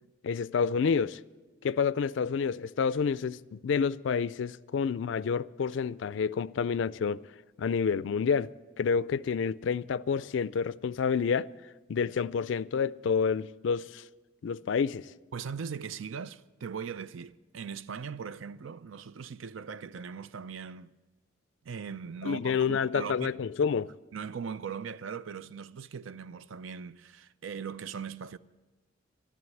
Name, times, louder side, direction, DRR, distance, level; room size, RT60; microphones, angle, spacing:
voice 1, 0.2-1.2 1.6-7.2 7.6-8.5 8.8-11.5 11.9-14.0 14.4-15.1 22.2-23.9, left 6 dB, 70° left, 0.4 m, -29 dB
voice 2, 15.3-20.9 21.6-23.3 24.1-28.4, right 6 dB, 85° right, 0.5 m, -39 dB
12.5 x 11.0 x 8.3 m
head